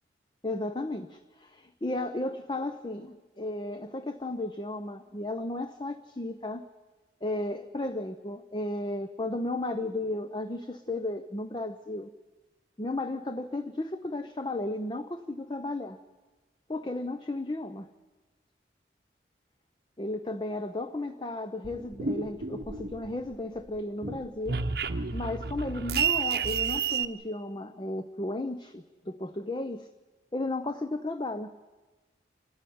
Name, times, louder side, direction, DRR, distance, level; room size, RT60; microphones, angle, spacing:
voice 1, 0.4-6.6 7.2-12.1 12.8-16.0 16.7-17.9 20.0-24.6 25.1-29.9 30.3-31.6, left 2 dB, 25° left, 9 dB, 0.7 m, -34 dB
sound 1, 21.6-23.3 23.7-27.1, right 6 dB, 55° right, 0.9 m, -30 dB
28.0 x 13.0 x 9.3 m, 1.3 s
head